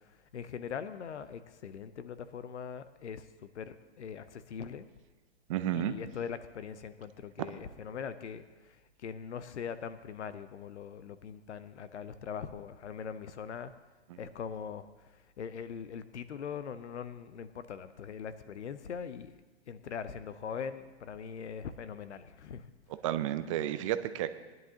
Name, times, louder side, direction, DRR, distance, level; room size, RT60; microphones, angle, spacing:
voice 1, 0.3-3.2 3.5-4.9 5.7-8.4 9.0-13.7 14.2-14.8 15.4-19.3 19.7-22.7, left 7 dB, 85° left, 12 dB, 0.8 m, -41 dB
voice 2, 5.5-6.0 7.4-7.5 14.1-14.2 23.0-24.4, right 12 dB, 30° right, 11 dB, 0.5 m, -32 dB
19.5 x 10.5 x 2.8 m, 1.2 s
hypercardioid pair, 145°, 34 cm